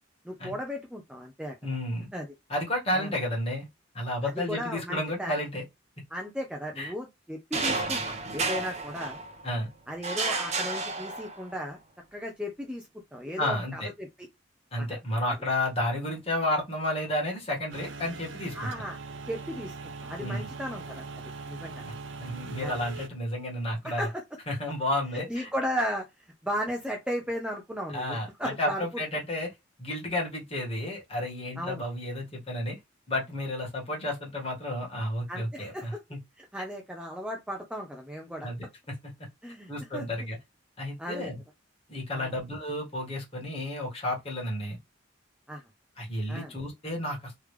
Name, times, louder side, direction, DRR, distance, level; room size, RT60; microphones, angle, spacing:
voice 1, 0.2-1.5 2.1-2.3 2.9-3.1 4.2-5.4 6.1-9.2 9.9-11.8 12.1-14.1 15.3-15.4 18.5-19.0 19.2-21.0 21.5-21.8 22.6-22.7 23.8-24.2 25.3-26.1 26.4-29.0 31.6-31.8 35.3-36.0 36.4-38.5 39.4-40.1 41.0-41.3 42.1-42.3 45.5-45.6 46.3-46.5, equal, 5° right, 0.7 m, -35 dB
voice 2, 1.6-2.1 2.5-3.7 3.9-5.6 6.8-6.9 9.4-9.7 13.4-13.9 14.7-18.7 20.2-20.5 21.8-21.9 22.2-24.1 24.5-25.5 27.9-29.5 29.8-32.8 33.1-36.2 38.4-39.1 39.7-40.4 40.8-41.4 41.9-44.8 46.0-47.4, left 1 dB, 30° left, 1.9 m, -31 dB
sound 1, 7.5-9.5 10.0-11.6, right 3 dB, 35° right, 1.0 m, -31 dB
sound 2, 17.7-23.1, right 3 dB, 80° right, 0.7 m, -41 dB
3.4 x 3.4 x 3.3 m
head